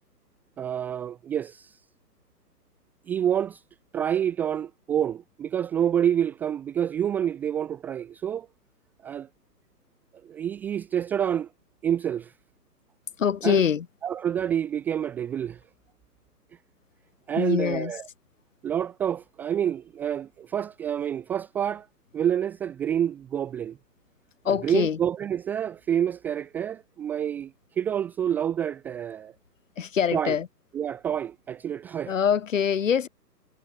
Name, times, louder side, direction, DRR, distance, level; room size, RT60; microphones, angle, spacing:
voice 1, 0.6-1.8 3.1-3.6 3.9-8.5 9.0-9.3 10.2-11.5 11.8-12.3 13.4-13.6 14.0-15.6 17.3-18.0 18.6-21.9 22.1-23.8 24.6-29.3 30.1-30.3 30.7-32.1, right 9 dB, 5° right, 0.9 m, -28 dB
voice 2, 13.2-13.9 17.4-17.9 24.4-25.0 29.8-30.5 32.1-33.1, left 7 dB, 50° left, 6.2 m, -24 dB
figure-of-eight pair, 150°, 49 cm